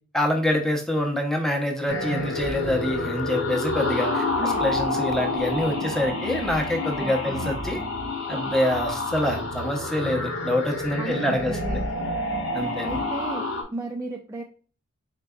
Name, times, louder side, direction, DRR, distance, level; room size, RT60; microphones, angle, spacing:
voice 1, 0.1-7.8 8.3-11.8 12.5-13.0, left 1 dB, ahead, 1 dB, 0.7 m, -26 dB
sound 1, 1.9-13.6, left 2 dB, 85° left, 1.2 m, -28 dB
voice 2, 7.0-7.5 11.0-12.2 12.8-14.4, right 2 dB, 15° right, 1 dB, 0.4 m, -35 dB
4.4 x 3.9 x 2.3 m, 0.38 s
head